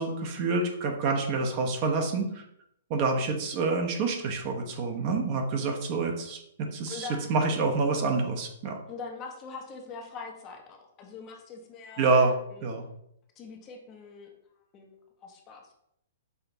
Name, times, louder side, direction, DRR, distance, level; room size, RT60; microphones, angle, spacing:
voice 1, 0.0-2.3 2.9-8.8 12.0-12.3 12.6-12.8, right 3 dB, 45° right, 2 dB, 0.8 m, -27 dB
voice 2, 6.9-7.3 8.9-12.7 13.4-14.3 14.7-14.9 15.2-15.6, left 4 dB, 30° left, 2 dB, 0.8 m, -43 dB
5.6 x 2.9 x 2.8 m, 0.75 s
hypercardioid pair, 125°, 0 cm